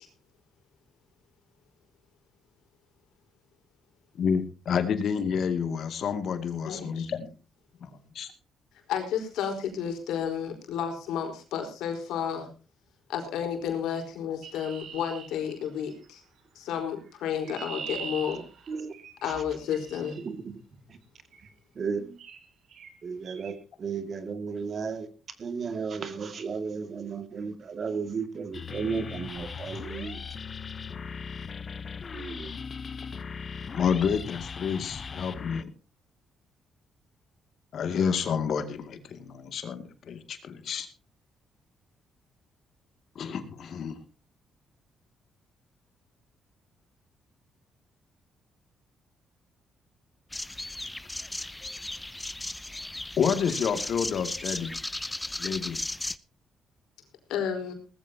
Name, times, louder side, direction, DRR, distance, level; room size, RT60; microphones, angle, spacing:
voice 1, 4.1-7.3 7.8-8.3 33.7-35.7 37.7-40.9 43.2-44.0 53.2-54.8 55.4-55.8, left 7 dB, 65° left, 2.4 m, -29 dB
voice 2, 6.6-7.1 8.9-12.5 13.1-16.2 16.5-18.4 19.2-20.2 57.3-57.7, left 8 dB, 85° left, 4.6 m, -31 dB
Chirp tweet, 14.4-16.0 17.1-20.2 21.3-21.6 22.2-22.4 22.7-22.9 23.2-23.5, right 7 dB, 70° right, 2.9 m, -43 dB
voice 3, 18.3-18.9 19.2-19.3 20.2-20.6 20.9-21.0 21.7-22.2 23.0-25.1 25.4-30.2 32.1-32.5, right 5 dB, 50° right, 2.3 m, -34 dB
sound 1, 28.5-35.6, left 6 dB, 40° left, 0.9 m, -38 dB
sound 2, 50.3-56.2, left 1 dB, 10° left, 0.7 m, -36 dB
19.0 x 14.5 x 2.9 m
cardioid pair, 90°, 0 cm